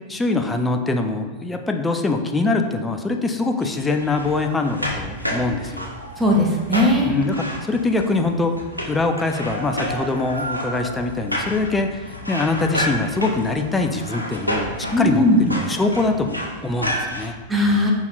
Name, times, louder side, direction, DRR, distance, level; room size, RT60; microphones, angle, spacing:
voice 1, 0.1-5.9 7.0-8.6 8.8-17.3, left 3 dB, 10° left, 4 dB, 0.5 m, -23 dB
sound 1, 3.6-17.3, equal, 90° left, 0.8 m, -30 dB
voice 2, 6.2-7.2 14.9-15.4 17.5-17.9, left 1 dB, 10° right, -1 dB, 1.2 m, -18 dB
5.4 x 4.4 x 3.9 m, 1.2 s
figure-of-eight pair, 90°, 0 cm